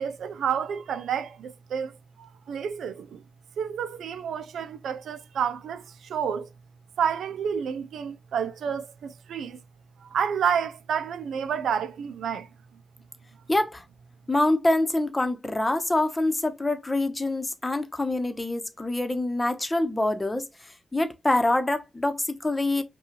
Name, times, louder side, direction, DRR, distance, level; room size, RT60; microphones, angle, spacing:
voice 1, 0.0-3.2 3.6-6.5 7.0-9.6 10.0-12.5, right 7 dB, 85° right, 0.4 m, -30 dB
voice 2, 13.5-13.8 14.3-20.5 20.9-22.8, left 2 dB, 20° left, 0.9 m, -25 dB
5.6 x 2.3 x 3.0 m
cardioid pair, 55°, 0 cm